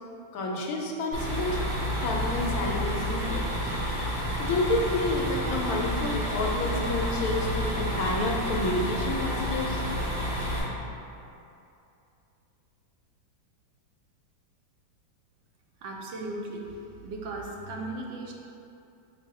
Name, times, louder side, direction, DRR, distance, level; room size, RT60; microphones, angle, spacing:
voice 1, 0.3-3.7 4.4-9.8, left 2 dB, 75° left, 0 dB, 0.8 m, -30 dB
sound 1, 1.1-10.6, equal, 50° right, 2.1 m, -30 dB
voice 2, 15.8-18.3, right 2 dB, 80° right, 0 dB, 1.3 m, -37 dB
5.5 x 2.1 x 4.6 m, 2.7 s
omnidirectional pair, 2.0 m